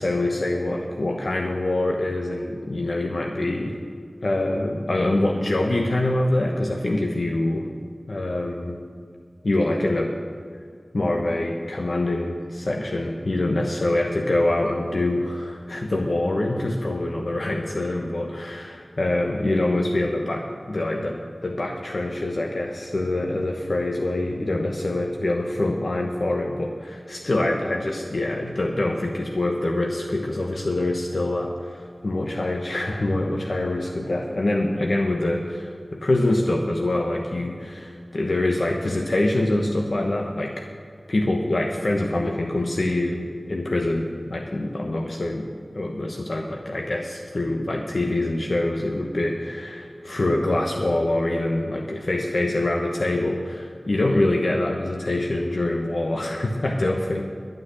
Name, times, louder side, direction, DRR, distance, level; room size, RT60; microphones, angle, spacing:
voice 1, 0.0-3.8 4.2-7.7 8.1-8.8 9.4-10.1 10.9-40.7 41.1-45.5 45.7-57.2, left 1 dB, 80° left, 1 dB, 1.1 m, -25 dB
12.0 x 9.0 x 8.0 m, 2.1 s
wide cardioid pair, 45°, 0 cm